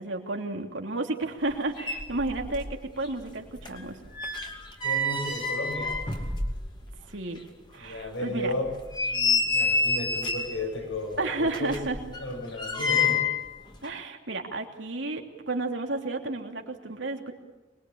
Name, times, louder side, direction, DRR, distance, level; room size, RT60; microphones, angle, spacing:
voice 1, 0.0-2.6 3.0-4.0 7.1-7.4 7.7-8.5 11.2-12.0 13.8-17.3, right 2 dB, 80° right, 2 dB, 3.0 m, -32 dB
sound 1, 1.5-1.6 1.8-2.8 3.0-7.0 7.4-7.5 8.0-8.1 8.7-10.6 11.5-13.5 13.7-13.9, left 3 dB, 25° left, 2.5 m, -28 dB
voice 2, 4.8-6.0 7.8-8.7 9.1-11.8 12.1-13.3, left 1 dB, 80° left, 2 dB, 6.9 m, -34 dB
25.0 x 21.5 x 8.7 m, 1.1 s
head